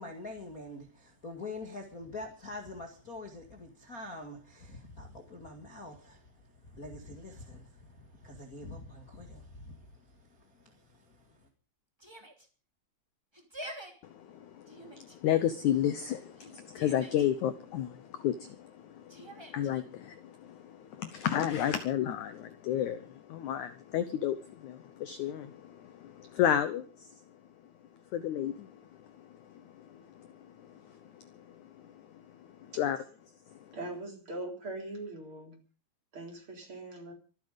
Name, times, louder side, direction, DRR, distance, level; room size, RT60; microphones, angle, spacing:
voice 1, 0.0-6.3 6.6-11.4, left 2 dB, 30° left, 1.8 m, -45 dB
Yell, 12.0-12.5 13.3-13.9 14.7-15.2 16.4-17.3 19.1-19.7, right 1 dB, 10° right, 2.4 m, -46 dB
voice 2, 14.8-26.9 28.1-28.7 32.8-33.0, left 10 dB, 80° left, 1.7 m, -31 dB
voice 3, 33.7-35.6 36.1-37.1, right 2 dB, 35° right, 4.3 m, -41 dB
24.5 x 9.6 x 5.2 m
omnidirectional pair, 4.6 m